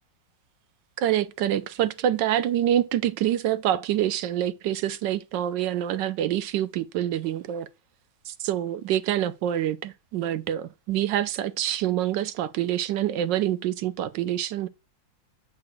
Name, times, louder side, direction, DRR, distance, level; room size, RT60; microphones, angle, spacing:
voice 1, 1.0-7.7 8.3-14.7, right 11 dB, 75° right, 1.2 m, -26 dB
8.3 x 4.8 x 2.6 m
omnidirectional pair, 2.1 m